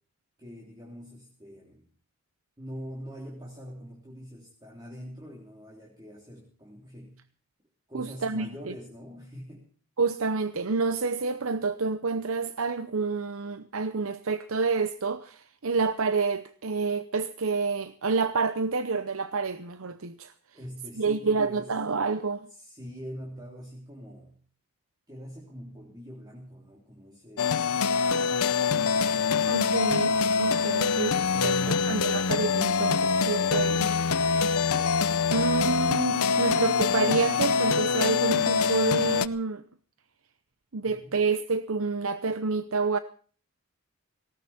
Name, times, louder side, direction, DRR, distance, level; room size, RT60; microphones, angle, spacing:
voice 1, 0.4-1.9 2.6-7.2 7.9-9.7 20.5-21.7 22.5-24.4 25.1-27.7 28.1-29.6 31.2-31.9 40.8-41.2, equal, 20° right, 3.3 m, -44 dB
voice 2, 7.9-8.5 10.0-20.3 21.0-22.5 29.5-31.2 31.4-31.6 31.9-33.9 35.3-39.6 40.7-43.0, right 4 dB, 70° right, 0.8 m, -28 dB
sound 1, 27.4-39.3, left 5 dB, 85° left, 0.8 m, -25 dB
18.5 x 17.5 x 4.3 m
head